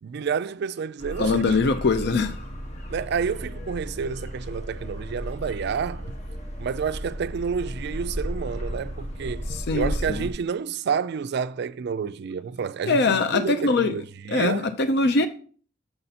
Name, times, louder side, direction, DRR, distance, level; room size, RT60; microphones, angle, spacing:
voice 1, 0.0-1.5 2.9-6.1 6.6-14.7, right 6 dB, 55° right, 0.3 m, -29 dB
sound 1, 1.0-10.3, equal, 35° left, 1.2 m, -34 dB
voice 2, 1.2-2.4 9.5-10.3 12.9-13.9 14.3-15.3, left 3 dB, 55° left, 0.5 m, -22 dB
6.8 x 5.5 x 4.1 m
head